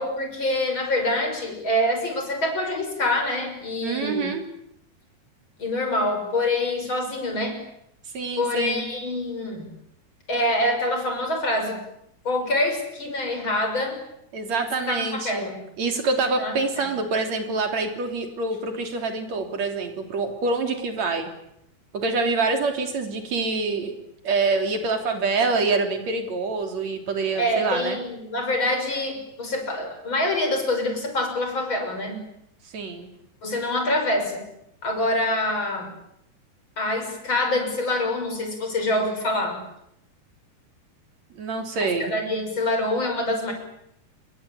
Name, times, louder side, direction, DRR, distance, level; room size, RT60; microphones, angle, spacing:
voice 1, 0.0-4.3 5.6-7.6 8.4-9.7 10.3-11.8 12.2-14.0 14.9-15.6 16.4-16.9 27.3-32.2 33.4-34.4 34.8-35.9 36.8-39.6 41.8-43.5, left 1 dB, 30° left, 5 dB, 6.8 m, -25 dB
voice 2, 3.8-4.4 8.1-8.9 14.3-15.5 15.8-21.3 21.9-23.9 24.2-28.0 32.7-33.1 41.4-42.1, right 3 dB, 45° right, 5 dB, 4.4 m, -26 dB
29.5 x 22.0 x 8.6 m, 0.76 s
omnidirectional pair, 4.5 m